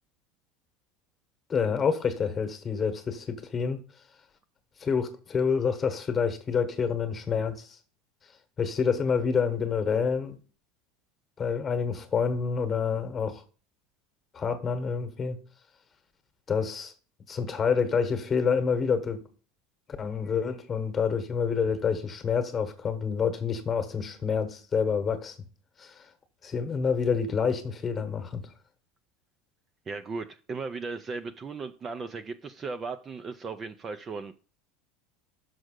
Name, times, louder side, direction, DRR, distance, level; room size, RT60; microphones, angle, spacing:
voice 1, 1.5-3.8 4.8-7.8 8.6-10.4 11.4-13.4 14.3-15.4 16.5-16.9 17.3-19.2 20.0-25.3 25.8-26.1 26.4-28.5, left 6 dB, 20° left, 1.1 m, -28 dB
voice 2, 29.9-34.4, right 4 dB, 20° right, 0.4 m, -36 dB
6.4 x 4.8 x 6.4 m
cardioid pair, 160°, 0 cm